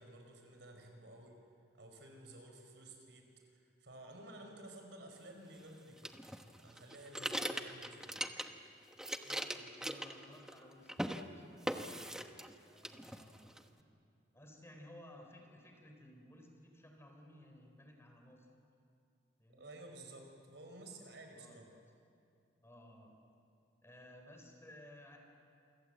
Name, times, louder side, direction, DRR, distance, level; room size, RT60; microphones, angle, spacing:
voice 1, 0.0-1.4 1.8-6.1 6.6-8.4 19.5-21.6, right 1 dB, 75° right, 3 dB, 5.2 m, -54 dB
sound 1, 6.0-8.7 8.9-10.6 10.9-11.2 11.7-12.5 12.8-13.6, equal, 5° right, 1.1 m, -40 dB
voice 2, 9.2-11.4 12.6-13.9 14.3-18.5 19.4-19.7 21.3-21.8 22.6-23.1 23.8-25.2, left 1 dB, 15° left, 2 dB, 4.2 m, -57 dB
28.0 x 25.0 x 7.9 m, 2.5 s
head